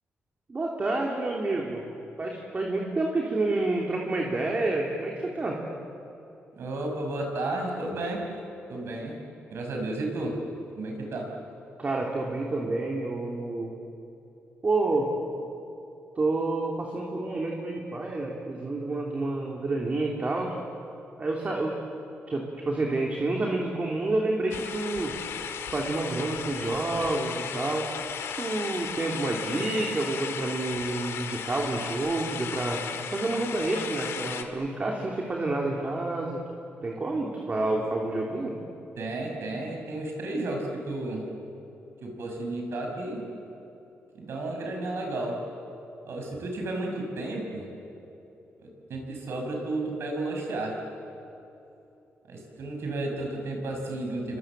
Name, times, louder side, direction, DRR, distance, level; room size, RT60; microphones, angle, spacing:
voice 1, 0.5-1.8 2.2-5.6 11.8-13.7 14.6-15.1 16.1-20.6 21.2-21.7 22.3-25.1 25.7-27.8 28.2-32.8 33.1-36.4 36.8-38.5, right 2 dB, 35° right, -1 dB, 3.3 m, -29 dB
voice 2, 6.6-8.3 8.7-9.2 9.5-10.4 10.8-11.4 39.0-41.3 42.0-43.3 44.1-45.5 46.1-47.7 48.6-50.9 52.3-54.4, right 2 dB, 70° right, 2 dB, 6.5 m, -32 dB
sound 1, 24.5-34.4, left 7 dB, 90° left, 2.0 m, -35 dB
30.0 x 24.5 x 7.6 m, 2.9 s
cardioid pair, 105°, 4 cm